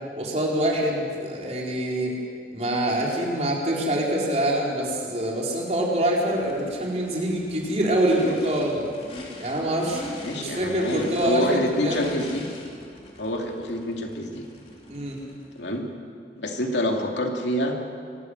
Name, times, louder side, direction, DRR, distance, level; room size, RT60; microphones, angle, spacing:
voice 1, 0.2-2.2 2.5-8.9 9.4-10.0 10.4-12.1 14.9-15.2, right 1 dB, 40° right, -2 dB, 4.3 m, -25 dB
Race car auto racing / Idling / Accelerating revving vroom, 6.3-15.7, left 1 dB, 35° left, 3.0 m, -41 dB
voice 2, 10.2-12.5 13.2-14.5 15.5-15.8 16.4-17.8, left 1 dB, 90° left, 2 dB, 2.7 m, -27 dB
23.5 x 13.0 x 9.6 m, 2.2 s
head